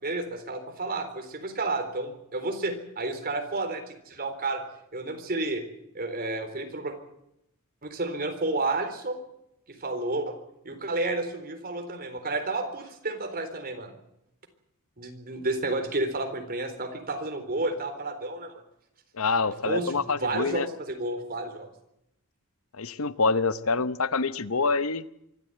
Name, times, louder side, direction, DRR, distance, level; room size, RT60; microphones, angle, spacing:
voice 1, 0.0-4.6 4.9-5.6 5.9-7.0 7.8-9.2 9.7-10.4 10.6-13.9 15.0-18.6 19.6-21.7, right 2 dB, 45° right, 6 dB, 4.0 m, -31 dB
voice 2, 19.2-20.7 22.7-25.0, left 4 dB, 70° left, 14 dB, 0.9 m, -26 dB
24.5 x 13.5 x 9.2 m, 0.79 s
head